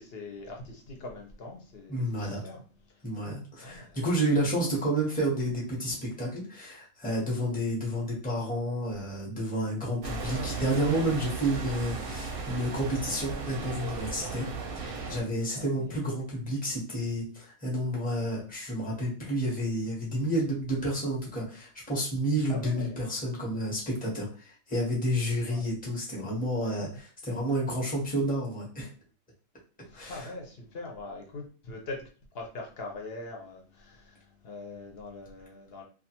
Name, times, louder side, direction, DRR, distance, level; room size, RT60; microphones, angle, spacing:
voice 1, 0.0-2.6 2.9-3.0 3.6-4.0 15.5-16.0 22.5-23.0 25.4-25.7 29.8-32.1 32.3-35.8, left 3 dB, 55° left, 0.8 m, -42 dB
voice 2, 1.9-2.4 3.0-14.5 14.8-28.9 29.9-30.3, right 1 dB, 10° left, 0.7 m, -30 dB
sound 1, 10.0-15.2, right 3 dB, 55° right, 0.7 m, -36 dB
2.4 x 2.3 x 2.8 m
omnidirectional pair, 1.3 m